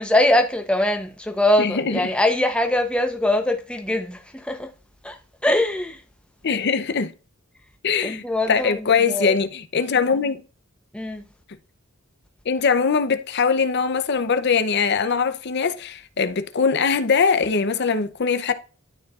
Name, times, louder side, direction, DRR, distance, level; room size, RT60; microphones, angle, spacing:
voice 1, 0.0-4.7 5.0-6.0 8.0-9.4 10.9-11.2, left 1 dB, 5° left, 0.7 m, -22 dB
voice 2, 1.6-2.0 6.4-7.1 7.8-10.4 12.5-18.5, left 5 dB, 55° left, 0.6 m, -21 dB
12.0 x 4.6 x 2.4 m
head